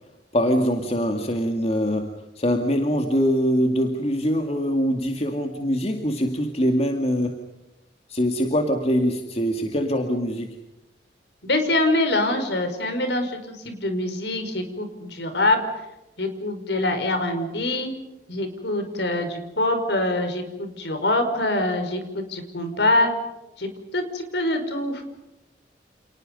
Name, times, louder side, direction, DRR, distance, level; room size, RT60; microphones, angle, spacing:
voice 1, 0.3-7.4 8.1-10.6, equal, 35° left, 4 dB, 2.2 m, -23 dB
voice 2, 11.4-15.8 16.2-17.9 18.3-23.1 23.6-25.0, left 2 dB, 75° left, 7 dB, 5.4 m, -24 dB
30.0 x 29.5 x 5.4 m, 0.94 s
head